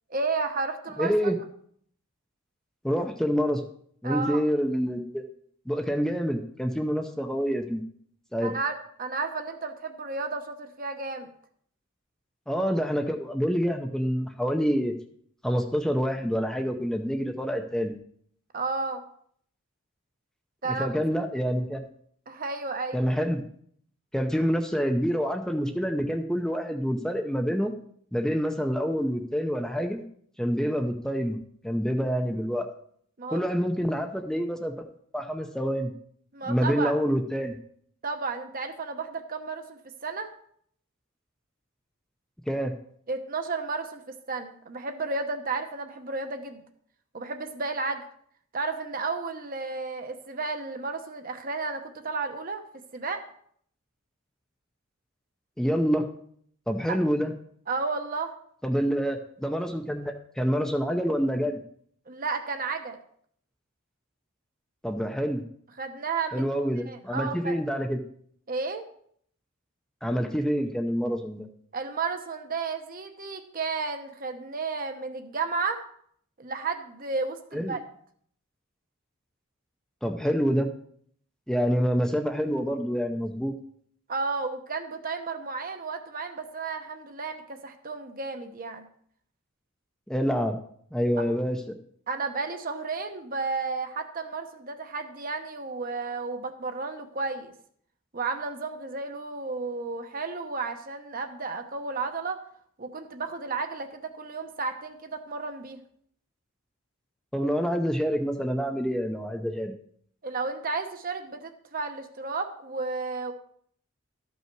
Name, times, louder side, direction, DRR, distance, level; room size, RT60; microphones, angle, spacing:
voice 1, 0.1-1.1 4.0-4.4 8.4-11.3 18.5-19.0 20.6-20.9 22.3-23.1 33.2-33.5 36.3-36.9 38.0-40.3 43.1-44.0 44.3-46.6 47.1-48.0 48.5-52.6 52.9-53.2 56.9-57.0 57.7-58.3 62.1-63.0 65.8-66.5 66.9-67.6 68.5-68.9 71.7-75.8 76.4-77.8 84.1-88.8 91.2-91.3 92.1-97.5 98.1-102.4 102.8-105.8 110.2-113.3, right 4 dB, 40° right, 6 dB, 0.9 m, -32 dB
voice 2, 1.0-1.3 2.8-3.6 4.0-5.2 5.7-7.8 8.3-8.5 12.5-14.9 15.4-17.9 20.8-21.8 22.9-23.4 24.1-27.7 28.1-30.0 30.4-31.4 31.6-32.7 33.3-35.9 36.5-37.5 42.5-42.7 55.6-56.1 56.7-57.3 58.6-61.6 64.8-65.4 66.3-68.0 70.0-71.5 77.5-77.8 80.0-80.7 81.5-83.5 90.1-90.6 90.9-91.6 107.3-109.7, equal, 5° left, 4 dB, 0.6 m, -27 dB
13.0 x 5.5 x 4.6 m, 0.63 s
head